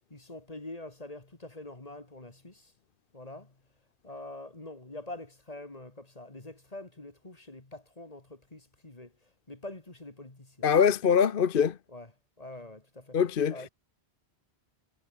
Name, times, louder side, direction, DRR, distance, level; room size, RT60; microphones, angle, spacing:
voice 1, 0.1-2.7 3.1-3.5 4.0-9.1 9.5-10.7 11.9-12.1 12.4-13.2 13.5-13.7, left 2 dB, 35° left, 2.4 m, -45 dB
voice 2, 10.6-11.8 13.1-13.7, left 7 dB, 55° left, 1.0 m, -23 dB
omnidirectional pair, 1.1 m